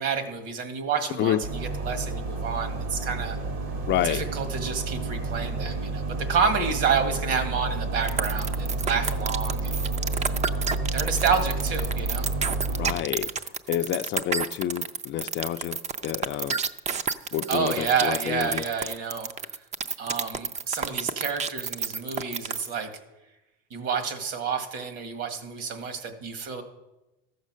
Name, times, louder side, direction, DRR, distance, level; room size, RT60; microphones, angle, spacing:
voice 1, 0.0-3.4 4.0-9.7 10.9-12.3 17.5-19.3 20.0-22.9 23.7-26.6, right 6 dB, 55° right, 1.8 m, -29 dB
sound 1, 1.4-12.9, right 3 dB, 70° right, 2.9 m, -30 dB
voice 2, 3.9-4.2 12.8-13.3 13.7-15.8 16.0-16.6 17.3-18.6, left 12 dB, 40° left, 0.4 m, -28 dB
sound 2, 8.1-22.7, right 6 dB, 25° right, 0.5 m, -29 dB
14.0 x 6.5 x 6.2 m
cardioid pair, 130°, 29 cm